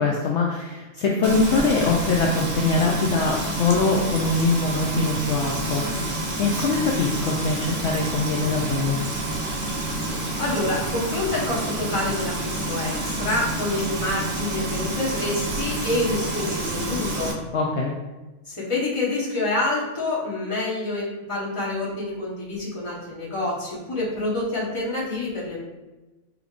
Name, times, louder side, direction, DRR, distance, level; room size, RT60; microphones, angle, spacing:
voice 1, 0.0-9.0 17.5-17.9, left 3 dB, 70° left, -2 dB, 0.8 m, -23 dB
Frying (food), 1.2-17.3, right 2 dB, 50° right, 0.9 m, -28 dB
voice 2, 9.5-9.8 10.4-17.4 18.5-25.6, left 2 dB, 25° left, -6 dB, 1.1 m, -27 dB
4.9 x 3.3 x 2.4 m, 1.1 s
omnidirectional pair, 1.3 m